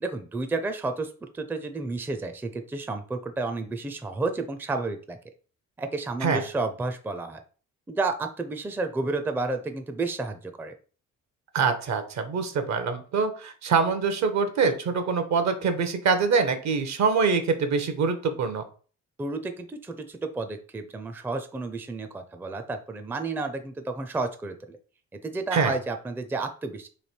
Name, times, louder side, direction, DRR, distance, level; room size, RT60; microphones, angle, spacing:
voice 1, 0.0-5.2 5.8-7.4 7.9-10.7 19.2-24.8 25.2-26.9, right 3 dB, 5° right, 7 dB, 0.4 m, -31 dB
voice 2, 11.5-18.6 25.5-25.7, right 5 dB, 65° right, 9 dB, 0.8 m, -24 dB
3.2 x 2.7 x 4.3 m, 0.40 s
cardioid pair, 90°, 30 cm